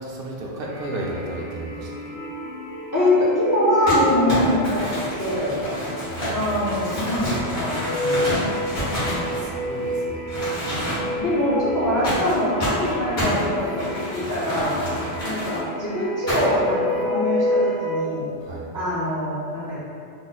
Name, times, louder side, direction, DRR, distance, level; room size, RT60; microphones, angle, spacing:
voice 1, 0.0-1.9 6.0-6.8 9.1-10.3 11.7-11.9 14.8-15.0 18.4-18.6, right 1 dB, 65° right, -3 dB, 0.7 m, -33 dB
sound 1, 0.7-18.0, left 1 dB, 45° right, 0.4 m, -30 dB
voice 2, 2.9-4.8 5.2-5.6 6.3-8.3 11.2-14.7 15.2-18.3 18.7-19.8, left 1 dB, 25° left, -8 dB, 0.4 m, -23 dB
Crumpling crinkling, 3.9-9.9 10.3-11.3 12.0-15.6 16.3-16.7, equal, 70° left, 1.6 m, -28 dB
3.4 x 2.1 x 4.0 m, 2.5 s
omnidirectional pair, 1.1 m